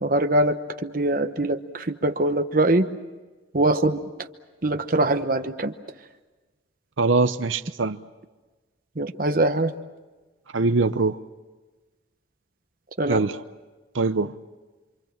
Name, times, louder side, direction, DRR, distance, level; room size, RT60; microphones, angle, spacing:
voice 1, 0.0-2.9 3.5-4.0 4.6-5.7 9.0-9.7 13.0-13.2, right 1 dB, 45° right, 7 dB, 1.0 m, -23 dB
voice 2, 7.0-8.0 10.5-11.2 13.1-13.4 13.9-14.3, right 3 dB, 85° right, 9 dB, 0.8 m, -22 dB
27.5 x 26.0 x 7.5 m, 1.2 s
head